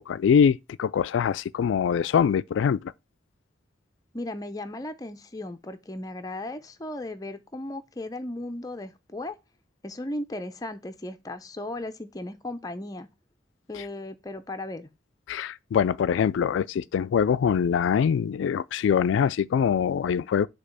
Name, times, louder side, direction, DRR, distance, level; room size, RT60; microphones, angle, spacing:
voice 1, 0.0-2.8 13.7-13.9 15.3-20.5, left 7 dB, 80° left, 0.3 m, -23 dB
voice 2, 4.1-9.4 9.8-13.1 13.7-14.9, left 1 dB, 20° left, 0.5 m, -36 dB
6.7 x 2.9 x 5.4 m
head